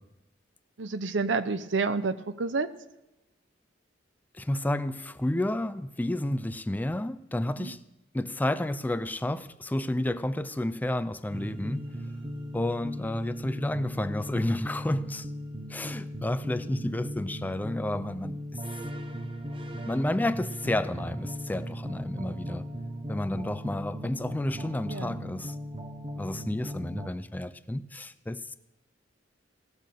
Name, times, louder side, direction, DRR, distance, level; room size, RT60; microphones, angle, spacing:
voice 1, 0.8-2.7 7.6-7.8 24.9-25.2, right 4 dB, 80° right, 0.7 m, -29 dB
voice 2, 4.3-7.8 8.1-12.0 12.5-15.3 15.7-18.4 19.9-22.7 23.1-25.6 26.1-28.6, left 1 dB, 10° left, 0.3 m, -31 dB
sound 1, 11.3-27.1, equal, 30° right, 0.8 m, -38 dB
16.5 x 6.2 x 6.7 m
head